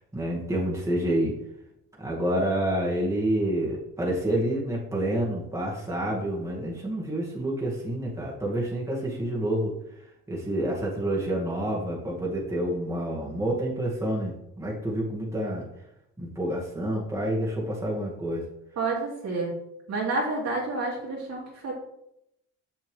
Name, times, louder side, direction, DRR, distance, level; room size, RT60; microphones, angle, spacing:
voice 1, 0.1-1.4 2.0-9.7 10.3-15.7 16.2-18.5, right 1 dB, 10° right, -4 dB, 2.1 m, -28 dB
voice 2, 18.8-19.5 19.9-21.7, right 3 dB, 60° right, -3 dB, 2.7 m, -29 dB
6.6 x 6.6 x 3.5 m, 0.81 s
cardioid pair, 90°, 30 cm